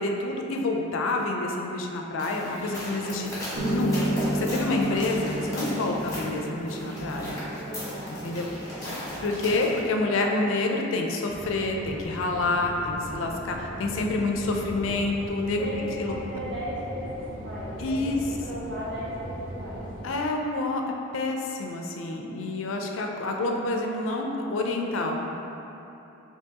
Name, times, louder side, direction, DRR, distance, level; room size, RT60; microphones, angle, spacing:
voice 1, 0.0-3.3 3.7-7.4 8.1-8.5 8.9-15.7 16.0-16.1 17.8-18.2 20.0-20.8 21.1-25.3, left 2 dB, 75° left, 1 dB, 0.4 m, -28 dB
sound 1, 2.2-9.8, equal, 15° left, 1.1 m, -36 dB
Piano, 3.5-11.6, right 1 dB, 85° right, 0.9 m, -33 dB
voice 2, 7.5-8.4 15.6-19.8 22.1-22.6, equal, 55° right, -9 dB, 1.1 m, -37 dB
sound 2, 11.3-20.0, right 1 dB, 40° right, 0.6 m, -39 dB
4.5 x 2.8 x 2.8 m, 3.0 s
head